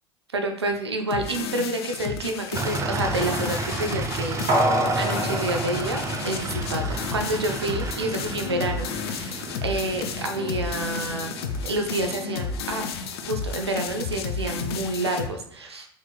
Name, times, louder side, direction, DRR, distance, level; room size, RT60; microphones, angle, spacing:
voice 1, 0.3-11.3 11.6-12.8 13.3-15.9, right 2 dB, 90° right, 5 dB, 0.4 m, -29 dB
sound 1, 1.1-15.3, left 6 dB, 75° left, 0.4 m, -32 dB
sound 2, 2.5-14.3, right 2 dB, 20° right, 0.5 m, -33 dB
sound 3, 4.5-7.0 7.4-7.5, right 1 dB, 45° right, 0.9 m, -26 dB
3.8 x 3.0 x 2.2 m, 0.63 s
figure-of-eight pair, 70°, 13 cm